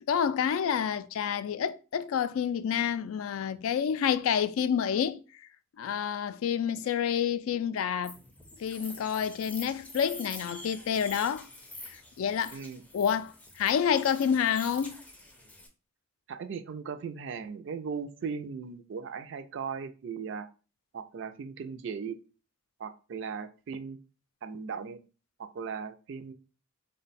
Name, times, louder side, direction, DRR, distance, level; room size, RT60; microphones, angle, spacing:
voice 1, 0.0-5.2 5.8-8.2 8.6-11.5 11.9-12.6 12.9-15.0, left 8 dB, 75° left, 0.3 m, -28 dB
sound 1, 8.0-15.7, left 1 dB, 5° left, 0.4 m, -46 dB
voice 2, 12.5-12.8 16.3-20.5 20.9-22.2 22.8-24.0 24.4-25.0 25.4-26.3, right 6 dB, 60° right, 0.3 m, -38 dB
3.7 x 2.2 x 4.0 m
head